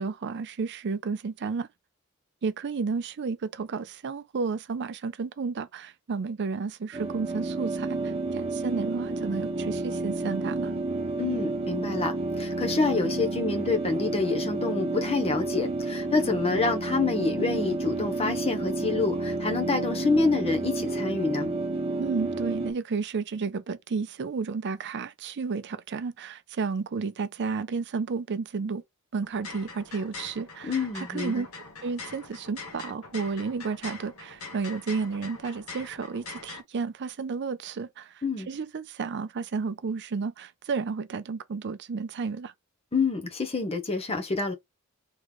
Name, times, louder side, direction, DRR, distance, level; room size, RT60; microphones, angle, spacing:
voice 1, 0.0-1.7 2.4-10.7 22.0-28.8 29.1-31.5 31.8-42.5, right 4 dB, 50° right, 0.5 m, -32 dB
sound 1, 6.9-22.7, right 2 dB, 30° right, 0.8 m, -30 dB
voice 2, 11.2-21.5 30.6-31.5 38.2-38.5 42.9-44.5, left 3 dB, 25° left, 0.9 m, -27 dB
sound 2, 29.2-36.6, left 4 dB, 75° left, 1.6 m, -43 dB
3.7 x 3.2 x 3.4 m
head